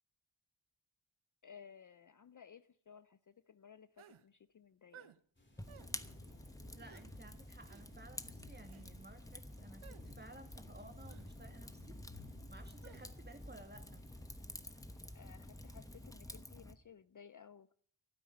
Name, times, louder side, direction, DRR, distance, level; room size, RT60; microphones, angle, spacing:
voice 1, 1.4-5.1 15.1-17.7, left 7 dB, 40° left, 14 dB, 0.5 m, -58 dB
sound 1, 4.0-4.2 4.9-5.2 5.7-5.9 6.8-7.0 7.6-7.8 8.6-8.9 9.8-10.0 11.1-11.3 12.8-13.0, right 9 dB, 85° right, 0.8 m, -58 dB
sound 2, 5.3-16.1, left 2 dB, 25° left, 2.8 m, -60 dB
Fire, 5.6-16.7, left 1 dB, 5° left, 1.0 m, -50 dB
voice 2, 6.7-12.0 12.5-14.0, right 2 dB, 20° right, 6 dB, 2.1 m, -56 dB
12.0 x 9.6 x 9.4 m, 0.62 s
wide cardioid pair, 60°, 47 cm